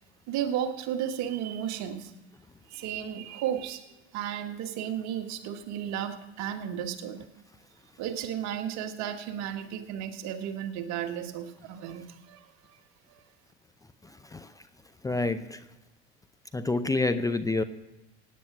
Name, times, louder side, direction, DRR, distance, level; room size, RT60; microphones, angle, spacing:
voice 1, 0.3-2.1 2.7-3.9 4.1-7.3 8.0-12.8 13.1-13.2, right 9 dB, 55° right, 7 dB, 1.6 m, -34 dB
voice 2, 15.0-15.6 16.5-17.6, left 2 dB, 10° left, 9 dB, 0.6 m, -27 dB
17.0 x 9.6 x 6.0 m, 1.0 s
hypercardioid pair, 75°, 33 cm